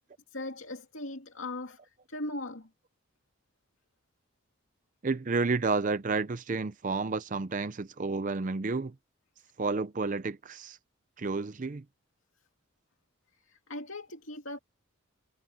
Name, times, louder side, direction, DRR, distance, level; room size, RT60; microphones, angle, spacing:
voice 1, 0.3-1.8 2.1-2.7 13.5-14.6, left 2 dB, 70° left, 2.4 m, -39 dB
voice 2, 5.0-8.9 9.6-10.8 11.2-11.8, right 3 dB, 35° right, 0.5 m, -31 dB
head